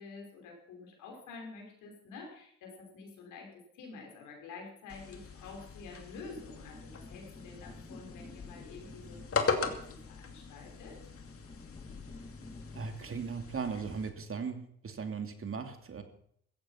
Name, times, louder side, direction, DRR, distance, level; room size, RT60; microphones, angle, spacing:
voice 1, 0.0-9.8 10.1-11.0, left 4 dB, 85° left, 1 dB, 5.5 m, -48 dB
sound 1, 4.9-14.1, left 5 dB, 45° left, 2.5 m, -39 dB
sound 2, 6.2-12.9, left 2 dB, 15° left, 2.4 m, -52 dB
voice 2, 12.7-16.0, right 5 dB, 45° right, 6 dB, 2.8 m, -38 dB
15.5 x 14.5 x 5.8 m, 0.65 s
supercardioid pair, 70°, 30 cm